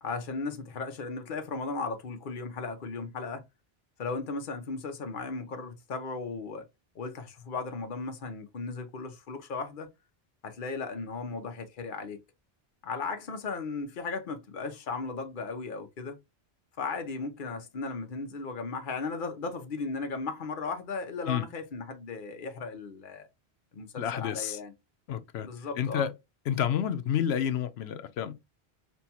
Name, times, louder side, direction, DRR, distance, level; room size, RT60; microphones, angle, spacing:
voice 1, 0.0-3.4 4.0-6.7 6.9-9.9 10.4-12.2 12.8-16.2 16.8-23.3 23.7-24.7 25.4-26.0, left 4 dB, 55° left, 0.9 m, -36 dB
voice 2, 24.0-24.6 25.1-25.5 25.8-26.1 26.5-28.3, left 9 dB, 85° left, 0.9 m, -29 dB
5.6 x 2.3 x 2.8 m
omnidirectional pair, 1.1 m